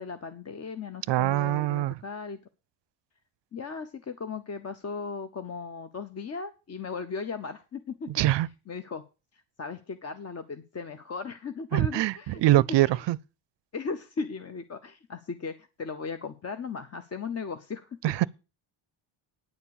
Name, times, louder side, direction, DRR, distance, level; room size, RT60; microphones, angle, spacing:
voice 1, 0.0-2.4 3.5-9.0 9.3-12.4 12.8-13.0 13.7-18.0, left 5 dB, 30° left, 0.7 m, -37 dB
voice 2, 1.1-2.0 8.1-8.5 11.7-13.2 18.0-18.3, right 15 dB, 60° right, 0.5 m, -23 dB
9.6 x 7.2 x 6.9 m
wide cardioid pair, 165°, 49 cm